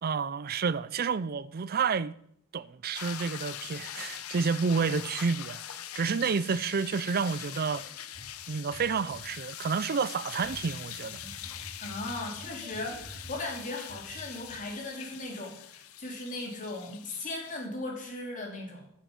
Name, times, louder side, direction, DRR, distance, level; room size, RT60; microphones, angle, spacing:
voice 1, 0.0-2.1 2.5-5.6 5.9-7.9 8.5-11.2, right 5 dB, 40° right, 0.4 m, -30 dB
sound 1, 2.9-17.7, left 11 dB, 70° left, 0.7 m, -43 dB
sound 2, 4.7-4.8 5.5-5.8 6.1-6.2 6.5-6.6 6.9-8.3 8.7-9.3 9.6-9.8 10.4-13.5 13.9-15.2, right 1 dB, ahead, 6.2 m, -50 dB
voice 2, 11.8-18.9, left 2 dB, 35° left, 2.8 m, -38 dB
15.0 x 7.4 x 5.3 m
head